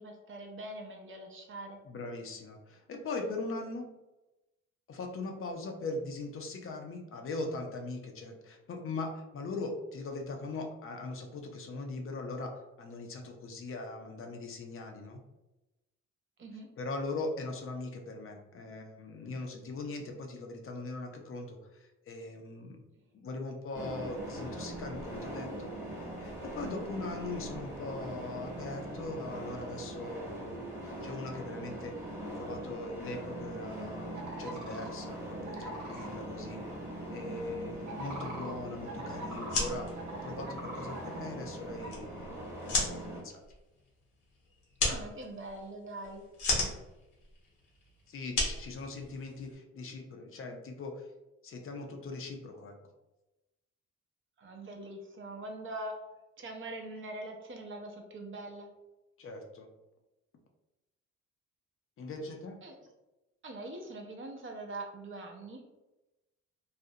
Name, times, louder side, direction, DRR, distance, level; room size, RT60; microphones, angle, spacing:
voice 1, 0.0-1.8 16.4-16.7 44.8-46.2 54.4-56.0 56.4-58.7 62.6-62.8 63.4-65.6, right 2 dB, 45° right, 2 dB, 0.6 m, -43 dB
voice 2, 1.9-3.9 4.9-12.5 12.8-15.2 16.8-22.8 23.1-25.7 26.2-31.9 32.2-36.6 37.1-43.4 48.1-51.0 51.4-52.7 59.2-59.7 62.0-62.6, left 2 dB, 45° left, 3 dB, 0.5 m, -40 dB
sound 1, 23.7-43.2, right 1 dB, 5° right, 0.9 m, -41 dB
sound 2, 34.1-34.9 35.4-36.1 37.8-39.7 40.0-41.3 41.8-41.9, right 1 dB, 70° right, 0.9 m, -43 dB
sound 3, 39.3-49.5, left 2 dB, 85° left, 0.9 m, -36 dB
2.4 x 2.0 x 2.6 m, 1.0 s
cardioid pair, 90°, 30 cm